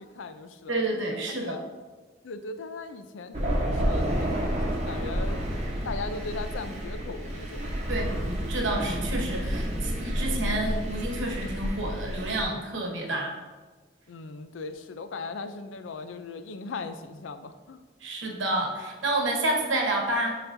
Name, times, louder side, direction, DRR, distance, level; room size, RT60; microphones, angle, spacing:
voice 1, 0.0-1.6 2.2-5.4 5.8-7.7 14.1-17.8, left 3 dB, 85° left, 10 dB, 0.4 m, -38 dB
voice 2, 0.7-1.6 7.9-13.4 18.0-20.4, right 1 dB, 80° right, 1 dB, 1.1 m, -29 dB
Thunder, 3.3-12.4, equal, 35° right, 0.9 m, -30 dB
9.0 x 4.1 x 2.6 m, 1.3 s
head